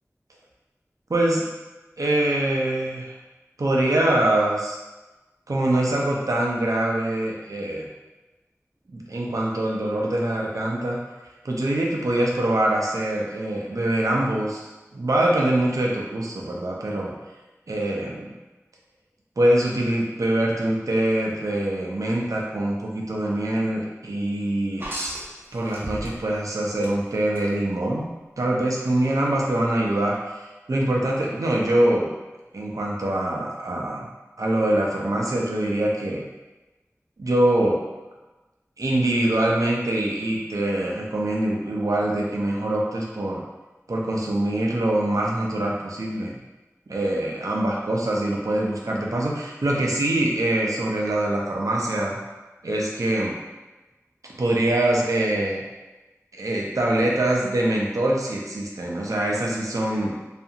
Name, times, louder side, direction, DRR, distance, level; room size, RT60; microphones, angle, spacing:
voice 1, 1.1-1.5 2.0-3.1 3.6-4.8 5.5-7.9 8.9-11.0 11.4-17.1 17.7-18.3 19.4-24.9 25.5-28.1 28.4-32.1 32.5-34.1 34.4-36.2 37.2-37.8 38.8-43.4 43.9-46.4 46.9-52.2 52.6-53.4 54.4-55.6 56.3-60.1, right 1 dB, 85° right, -2 dB, 0.5 m, -24 dB
sound 1, 24.8-26.4 26.8-27.5 29.0-29.1, right 1 dB, 40° right, 0.6 m, -33 dB
2.4 x 2.4 x 2.7 m, 1.1 s
wide cardioid pair, 45°, 6 cm